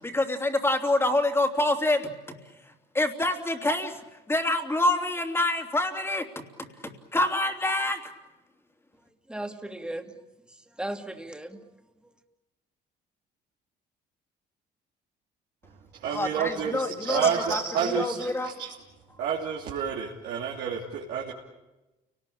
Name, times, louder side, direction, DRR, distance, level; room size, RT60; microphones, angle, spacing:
voice 1, 0.0-2.1 2.9-4.0 4.3-6.2 7.1-8.1 16.1-18.7, left 1 dB, 15° left, 5 dB, 3.1 m, -26 dB
voice 2, 8.9-12.2, right 1 dB, 5° right, 5 dB, 2.3 m, -38 dB
voice 3, 15.9-18.7 19.2-21.3, right 7 dB, 85° right, -4 dB, 3.1 m, -29 dB
29.5 x 19.0 x 8.7 m, 1.0 s
cardioid pair, 110°, 17 cm